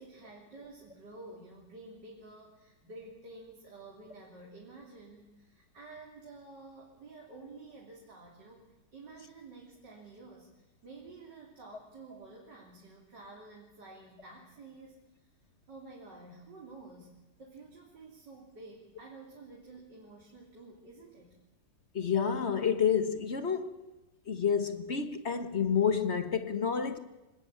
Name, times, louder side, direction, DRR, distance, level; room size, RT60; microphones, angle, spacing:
voice 1, 0.0-15.0 15.7-21.4, right 3 dB, 70° right, 3.8 m, -51 dB
voice 2, 21.9-23.8 24.3-27.0, left 7 dB, 40° left, 1.5 m, -29 dB
25.0 x 19.0 x 8.7 m
omnidirectional pair, 1.9 m